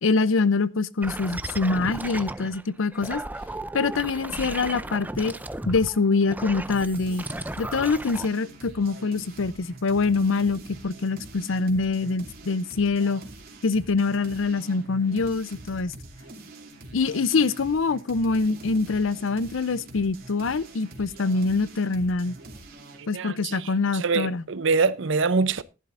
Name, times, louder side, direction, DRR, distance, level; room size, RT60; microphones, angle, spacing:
voice 1, 0.0-3.2 3.7-5.3 5.7-7.3 7.6-13.2 13.6-15.9 16.9-22.4 23.1-24.4, left 4 dB, 75° left, 0.6 m, -24 dB
sound 1, 1.0-2.6 2.9-8.3, right 2 dB, 10° right, 0.5 m, -35 dB
sound 2, 6.5-23.1, right 2 dB, 50° right, 2.6 m, -44 dB
voice 2, 23.0-25.6, right 4 dB, 65° right, 0.7 m, -25 dB
15.0 x 11.0 x 2.5 m
head